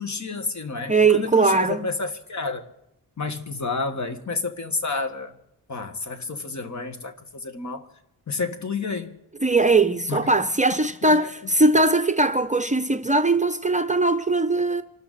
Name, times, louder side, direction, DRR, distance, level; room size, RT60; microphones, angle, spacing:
voice 1, 0.0-2.7 3.2-5.3 5.7-7.9 8.3-9.2 10.1-10.3 11.1-11.3, left 3 dB, 50° left, 1.7 m, -30 dB
voice 2, 0.9-1.9 9.4-14.8, right 3 dB, 20° right, 0.7 m, -20 dB
26.5 x 13.0 x 4.2 m
wide cardioid pair, 115°, 38 cm